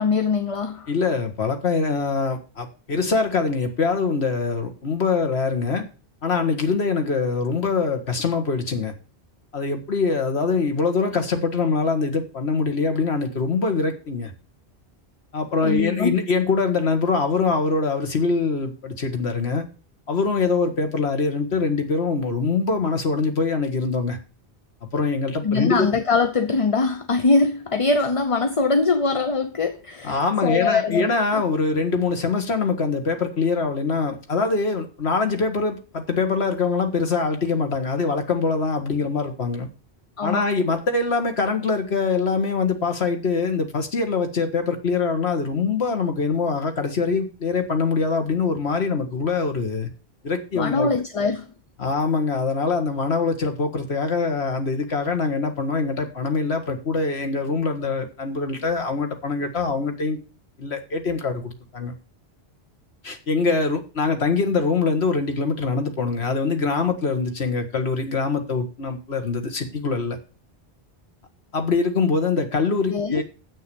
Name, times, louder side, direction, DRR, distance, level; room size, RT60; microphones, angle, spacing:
voice 1, 0.0-0.9 15.6-16.2 25.4-31.4 40.2-40.5 50.5-51.5 72.9-73.2, left 4 dB, 35° left, 0.7 m, -22 dB
voice 2, 0.9-5.8 6.2-8.9 9.5-14.3 15.3-19.6 20.1-24.2 24.9-25.9 30.0-39.7 40.2-49.9 50.2-50.9 51.8-60.2 60.6-61.9 63.0-70.2 71.5-73.2, left 4 dB, 80° left, 1.9 m, -23 dB
7.8 x 6.5 x 6.9 m
omnidirectional pair, 1.1 m